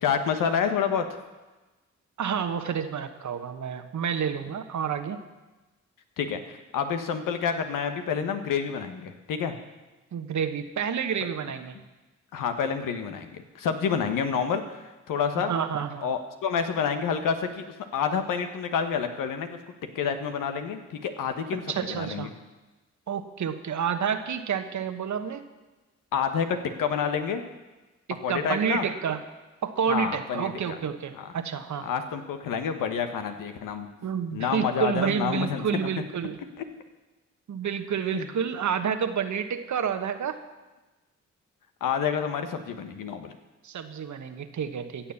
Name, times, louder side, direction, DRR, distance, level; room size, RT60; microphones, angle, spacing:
voice 1, 0.0-1.0 6.2-9.5 12.3-15.5 16.0-19.6 19.9-21.6 21.9-22.3 26.1-27.4 28.2-28.9 29.9-30.8 31.1-31.3 31.8-33.9 34.3-35.6 36.6-36.7 38.1-38.3 41.8-43.3, left 7 dB, 85° left, 7 dB, 1.3 m, -28 dB
voice 2, 2.2-5.2 10.1-11.7 15.4-16.1 21.5-22.3 23.1-25.4 28.1-29.2 29.6-31.9 34.0-36.4 37.5-40.4 43.6-45.1, right 7 dB, 65° right, 9 dB, 1.2 m, -29 dB
16.0 x 7.2 x 7.1 m, 1.1 s
supercardioid pair, 55°, 32 cm